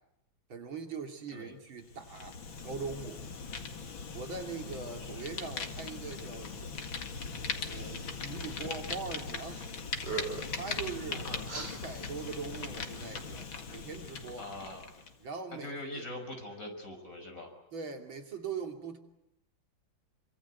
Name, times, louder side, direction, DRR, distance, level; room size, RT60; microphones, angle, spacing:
voice 1, 0.5-3.2 4.1-6.7 7.6-9.6 10.5-14.5 15.2-16.0 17.7-19.0, right 5 dB, 85° right, 4 dB, 3.5 m, -41 dB
Fire, 1.8-15.2, left 5 dB, 85° left, 2.8 m, -40 dB
sound 1, 9.4-9.7 10.0-10.6 11.5-11.7, right 4 dB, 55° right, 4.9 m, -38 dB
voice 2, 11.1-11.4 14.4-14.8 15.5-17.5, left 1 dB, 40° left, 4 dB, 6.2 m, -42 dB
27.0 x 25.0 x 8.3 m, 0.87 s
omnidirectional pair, 2.1 m